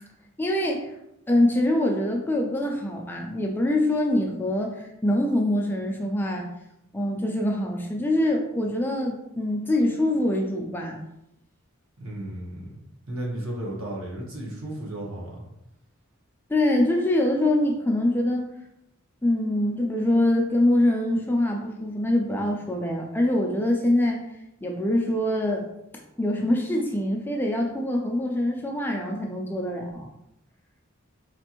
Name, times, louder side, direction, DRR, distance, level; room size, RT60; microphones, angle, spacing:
voice 1, 0.4-0.9 1.3-6.5 6.9-11.0 16.5-18.5 19.2-24.2 24.6-25.7 26.2-30.1, left 1 dB, 10° left, 0 dB, 0.3 m, -24 dB
voice 2, 12.0-12.7 13.1-15.4, right 1 dB, 70° right, -3 dB, 1.0 m, -34 dB
4.3 x 2.5 x 2.9 m, 0.85 s
head